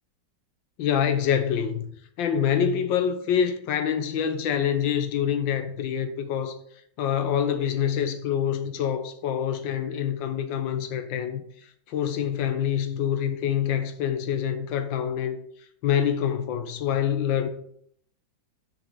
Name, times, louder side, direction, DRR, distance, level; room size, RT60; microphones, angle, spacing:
voice 1, 0.8-1.9 2.2-6.5 7.0-11.4 11.9-15.4 15.8-17.5, left 8 dB, 75° left, 1.5 m, -26 dB
6.6 x 5.9 x 4.1 m
omnidirectional pair, 2.1 m